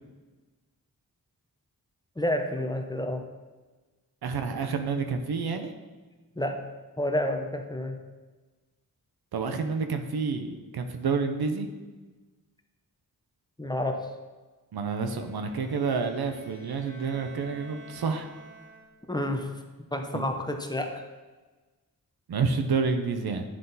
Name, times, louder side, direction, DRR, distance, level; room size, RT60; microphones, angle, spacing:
voice 1, 2.2-3.2 6.4-6.6 7.0-8.0 13.6-14.1 19.1-19.5 19.9-21.0, left 1 dB, 10° left, 4 dB, 0.7 m, -29 dB
voice 2, 4.2-5.7 9.3-11.7 14.7-18.3 20.1-20.3 22.3-23.4, right 5 dB, 90° right, 7 dB, 0.7 m, -29 dB
Bowed string instrument, 15.1-19.2, right 3 dB, 60° right, 1.2 m, -50 dB
10.0 x 3.9 x 4.0 m, 1.3 s
wide cardioid pair, 80°, 37 cm